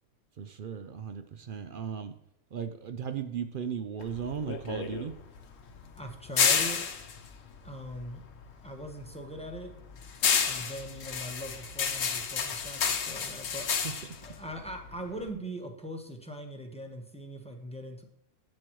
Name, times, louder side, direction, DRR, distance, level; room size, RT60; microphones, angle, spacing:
voice 1, 0.4-2.1 2.5-5.2 13.8-13.9, right 7 dB, 60° right, 9 dB, 0.5 m, -36 dB
sound 1, 4.0-8.5 8.8-15.3, left 6 dB, 65° left, 1.2 m, -30 dB
voice 2, 6.0-6.8 7.6-8.2 8.6-9.7 10.4-13.7 14.2-18.0, equal, 5° left, 3 dB, 0.9 m, -41 dB
10.5 x 8.1 x 3.1 m, 0.76 s
omnidirectional pair, 1.5 m